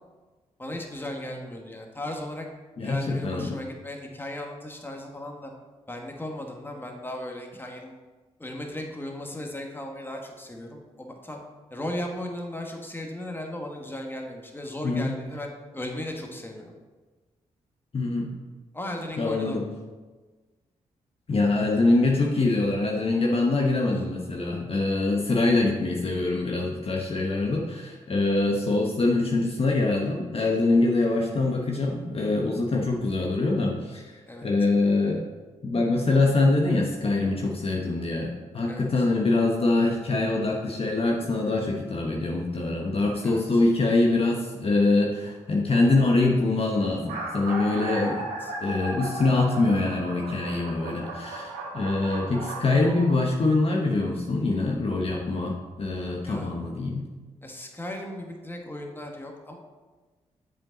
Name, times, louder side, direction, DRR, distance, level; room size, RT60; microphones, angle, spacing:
voice 1, 0.6-2.5 2.8-5.5 5.9-7.9 8.4-11.4 11.7-16.7 18.7-19.6 34.3-34.5 38.7-39.1 43.2-43.6 48.1-48.5 56.2-56.5 57.4-59.6, left 1 dB, 15° left, 1 dB, 1.4 m, -36 dB
voice 2, 2.8-3.6 14.8-15.1 17.9-18.3 19.2-19.6 21.3-35.2 35.6-48.3 48.6-57.1, left 2 dB, 45° left, 0 dB, 0.9 m, -24 dB
sound 1, 45.0-45.3 46.1-46.2 46.4-46.5 46.9-53.2, right 2 dB, 90° right, 1.2 m, -35 dB
7.4 x 5.1 x 3.9 m, 1.3 s
supercardioid pair, 45°, 14 cm